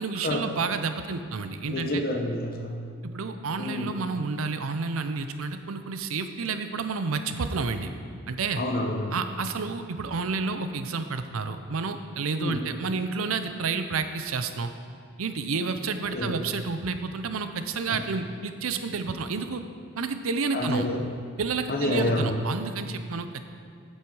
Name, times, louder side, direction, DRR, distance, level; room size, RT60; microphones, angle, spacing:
voice 1, 0.0-2.0 3.1-7.9 8.3-8.6 9.1-14.7 15.2-19.6 20.0-20.9 21.4-23.4, right 4 dB, 75° right, 9 dB, 0.6 m, -30 dB
voice 2, 1.7-2.8 3.6-3.9 8.6-9.2 12.4-12.6 16.1-16.4 17.9-18.0 20.5-21.0 21.7-22.4, left 1 dB, 45° left, 3 dB, 0.9 m, -28 dB
8.8 x 7.5 x 4.8 m, 2.3 s
head